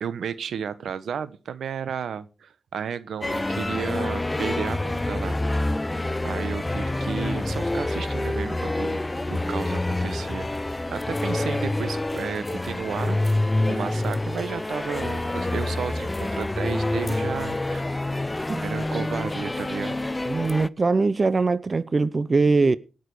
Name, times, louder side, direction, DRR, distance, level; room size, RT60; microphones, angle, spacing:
voice 1, 0.0-5.7 6.2-9.0 9.3-10.5 10.9-13.2 13.7-18.1 18.6-20.0, right 7 dB, 85° right, 0.9 m, -33 dB
sound 1, 3.2-20.7, left 2 dB, 20° left, 0.6 m, -27 dB
voice 2, 20.3-22.8, right 3 dB, 45° right, 0.7 m, -21 dB
18.5 x 6.6 x 4.8 m
cardioid pair, 55°, 0 cm